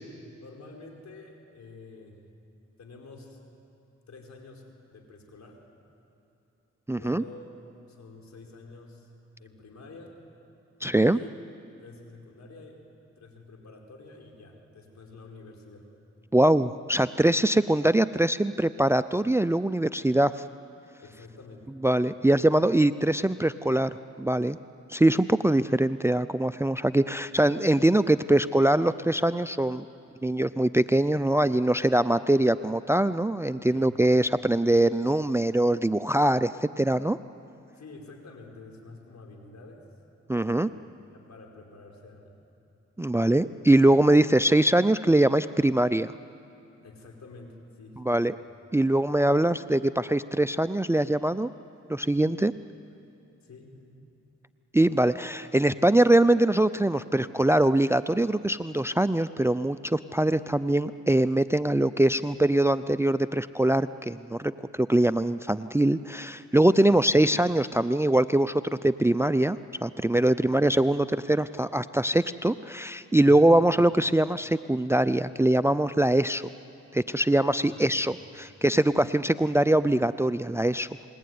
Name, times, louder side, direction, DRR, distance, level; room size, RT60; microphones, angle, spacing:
voice 1, 0.4-2.2 2.8-3.4 4.1-5.6 6.9-7.5 7.9-9.1 9.4-10.1 11.0-11.3 11.8-12.8 13.2-15.9 21.0-21.7 33.7-34.0 34.4-34.5 37.7-39.8 40.4-40.8 41.1-42.4 46.8-48.3 53.4-54.0 66.9-67.0 70.4-70.5 77.7-78.4, left 3 dB, 65° left, 2 dB, 4.8 m, -48 dB
voice 2, 6.9-7.2 10.8-11.2 16.3-20.3 21.8-23.9 24.2-24.6 24.9-29.8 30.2-37.2 40.3-40.7 43.0-46.1 48.1-48.3 48.7-51.5 51.9-52.5 54.7-76.4 76.9-80.9, right 1 dB, 10° right, 14 dB, 0.5 m, -23 dB
28.5 x 20.5 x 9.5 m, 2.8 s
cardioid pair, 60°, 29 cm